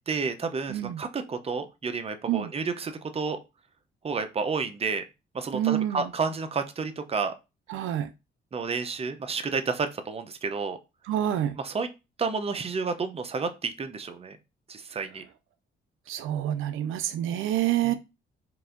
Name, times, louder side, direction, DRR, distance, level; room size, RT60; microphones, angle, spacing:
voice 1, 0.1-3.4 4.0-5.0 5.3-7.3 8.5-10.8 11.6-11.9 12.2-14.4 14.7-15.2 17.8-17.9, right 4 dB, 30° right, 8 dB, 0.7 m, -30 dB
voice 2, 0.7-1.0 2.3-2.5 5.5-6.1 7.7-8.1 11.1-11.6 16.1-17.9, right 12 dB, 85° right, 9 dB, 0.5 m, -27 dB
4.7 x 2.6 x 3.8 m, 0.26 s
cardioid pair, 90°, 20 cm